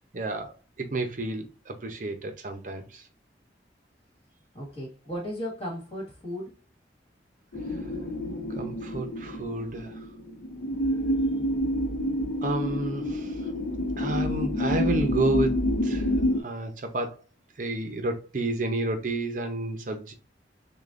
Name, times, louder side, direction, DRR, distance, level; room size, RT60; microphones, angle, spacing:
voice 1, 0.1-0.5 0.8-3.0 8.6-10.0 12.4-13.4 14.0-16.1 16.4-17.2 17.6-20.1, right 2 dB, 45° right, 0.6 m, -30 dB
voice 2, 4.5-6.6, equal, 35° left, 1.7 m, -35 dB
sound 1, 7.5-16.4, equal, 80° left, 0.8 m, -28 dB
6.5 x 2.2 x 2.5 m
head